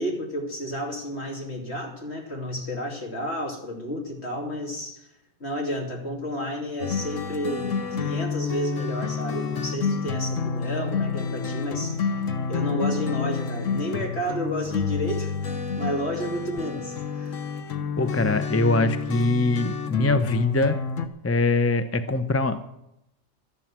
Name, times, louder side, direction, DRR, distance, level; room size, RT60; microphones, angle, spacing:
voice 1, 0.0-5.1 5.4-12.1 12.5-17.4 18.0-18.4, equal, 55° left, 1 dB, 3.2 m, -31 dB
sound 1, 6.8-21.1, left 5 dB, 75° left, 1.4 m, -29 dB
voice 2, 18.0-20.8 21.2-22.6, left 2 dB, 15° left, 10 dB, 0.5 m, -23 dB
12.5 x 11.0 x 7.4 m, 0.83 s
omnidirectional pair, 1.3 m